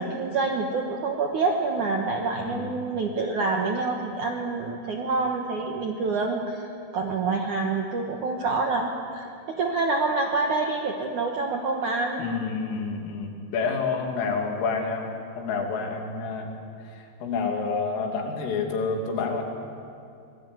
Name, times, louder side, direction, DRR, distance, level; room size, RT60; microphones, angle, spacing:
voice 1, 0.0-6.7 6.9-12.2, right 3 dB, 70° right, 1 dB, 1.9 m, -27 dB
voice 2, 2.4-2.7 12.2-15.1 15.4-16.5 17.0-19.4, left 4 dB, 85° left, 2 dB, 5.3 m, -28 dB
25.5 x 19.0 x 9.5 m, 2.5 s
omnidirectional pair, 5.7 m